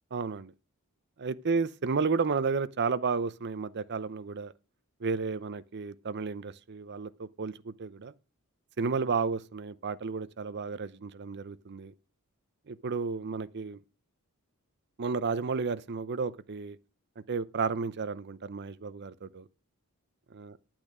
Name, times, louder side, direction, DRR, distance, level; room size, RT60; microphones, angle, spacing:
voice 1, 0.1-0.5 1.2-4.5 5.0-8.1 8.8-11.9 12.7-13.8 15.0-16.8 17.3-19.4 20.3-20.5, right 4 dB, 50° right, 0.6 m, -32 dB
10.5 x 9.0 x 5.0 m
head